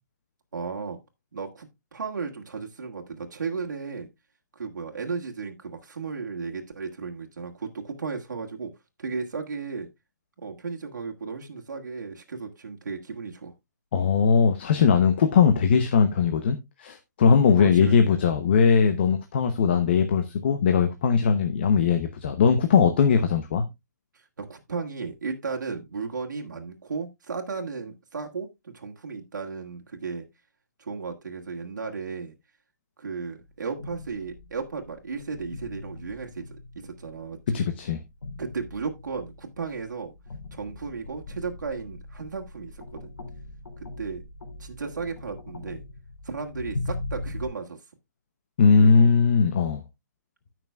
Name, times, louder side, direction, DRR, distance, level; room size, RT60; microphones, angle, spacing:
voice 1, 0.5-1.0 1.3-4.1 4.5-8.7 9.0-9.9 10.4-13.5 17.2-17.3 17.6-18.0 24.1-30.2 30.8-32.3 33.0-37.6 38.4-40.1 40.5-43.1 44.0-44.2 44.6-45.8 46.2-47.8 48.8-49.1, right 5 dB, 75° right, 1.8 m, -35 dB
voice 2, 13.9-23.6 37.5-38.0 48.6-49.8, left 6 dB, 35° left, 0.8 m, -20 dB
sound 1, 33.4-47.5, left 2 dB, 90° left, 2.7 m, -40 dB
16.0 x 6.0 x 2.3 m
hypercardioid pair, 170°, 10 cm